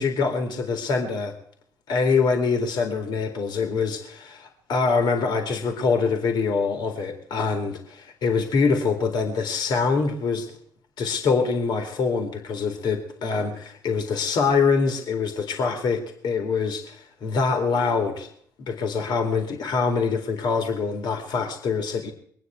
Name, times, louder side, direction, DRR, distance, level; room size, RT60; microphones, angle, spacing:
voice 1, 0.0-1.4 1.9-10.5 11.0-18.3 18.7-22.1, left 5 dB, 55° left, 4 dB, 2.3 m, -24 dB
23.5 x 9.3 x 4.6 m, 0.63 s
figure-of-eight pair, 45°, 9 cm